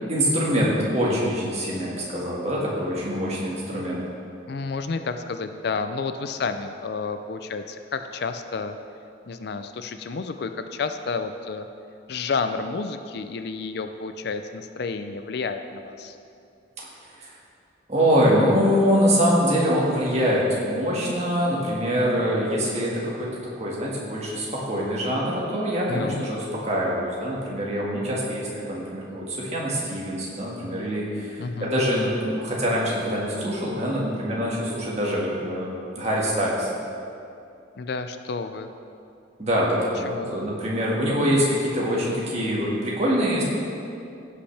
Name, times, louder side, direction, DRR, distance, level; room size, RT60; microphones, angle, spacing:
voice 1, 0.1-4.0 17.2-17.3 17.9-23.3 23.6-36.7 39.4-43.4, equal, 35° right, -5 dB, 1.7 m, -24 dB
voice 2, 4.4-8.8 9.3-11.7 12.1-16.2 25.9-26.2 31.4-31.7 37.8-38.7 40.1-40.3, left 4 dB, 55° left, 8 dB, 0.4 m, -30 dB
16.5 x 5.7 x 3.3 m, 2.6 s
head